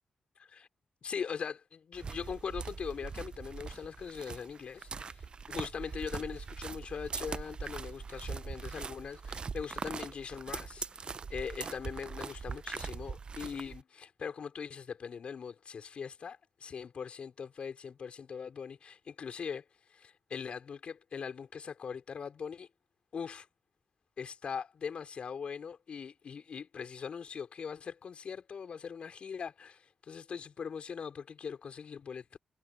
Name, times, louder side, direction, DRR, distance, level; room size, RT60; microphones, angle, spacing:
voice 1, 0.4-0.7 1.0-19.6 19.9-22.7 23.1-23.5 24.2-32.3, left 6 dB, 60° left, 4.9 m, -41 dB
sound 1, 1.9-13.8, right 5 dB, 45° right, 0.6 m, -41 dB
cardioid pair, 65°, 2 cm